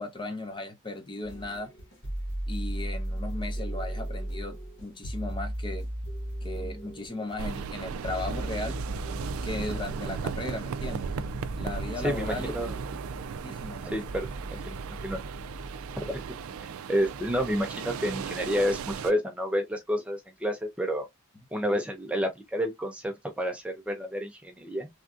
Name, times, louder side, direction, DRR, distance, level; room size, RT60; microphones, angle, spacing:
voice 1, 0.0-1.7 2.5-4.6 4.8-5.9 6.4-8.8 9.4-11.1 11.6-12.5 13.2-13.9, left 2 dB, 25° left, 0.7 m, -36 dB
sound 1, 1.2-18.4, right 1 dB, 65° left, 1.0 m, -37 dB
sound 2, 7.4-19.1, right 6 dB, 80° right, 0.3 m, -36 dB
voice 2, 12.0-12.7 13.8-14.3 14.6-14.8 15.0-15.2 16.1-16.2 16.9-21.1 21.5-24.9, equal, 5° right, 0.5 m, -29 dB
3.4 x 2.6 x 2.4 m
head